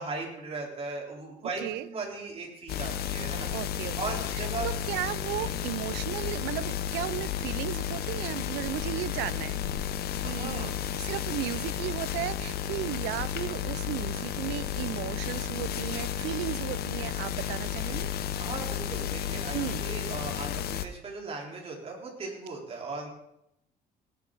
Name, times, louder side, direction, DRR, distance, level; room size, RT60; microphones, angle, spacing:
voice 1, 0.0-3.5 4.0-4.7 5.3-5.6 10.2-10.8 18.4-23.1, right 3 dB, 35° right, -1 dB, 4.1 m, -38 dB
sound 1, 2.7-20.9, left 10 dB, 65° left, 0.9 m, -32 dB
voice 2, 3.5-9.6 10.2-18.1 19.5-19.8, right 15 dB, 90° right, 18 dB, 0.5 m, -35 dB
18.5 x 10.0 x 4.0 m, 0.82 s
cardioid pair, 110°, 17 cm